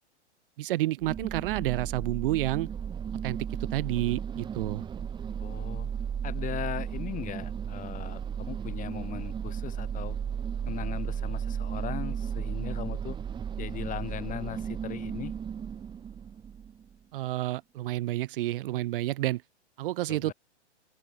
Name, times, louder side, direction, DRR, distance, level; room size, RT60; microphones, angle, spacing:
voice 1, 0.6-2.7 3.2-3.5 3.7-4.8 17.1-19.4 19.8-20.3, right 16 dB, 50° right, 2.2 m, -30 dB
sound 1, 1.0-16.9, right 8 dB, 15° right, 1.4 m, -34 dB
voice 2, 5.4-5.9 6.2-10.2 10.7-13.2 13.6-15.3 20.1-20.3, left 11 dB, 20° left, 5.1 m, -38 dB
open air
hypercardioid pair, 130°, 35 cm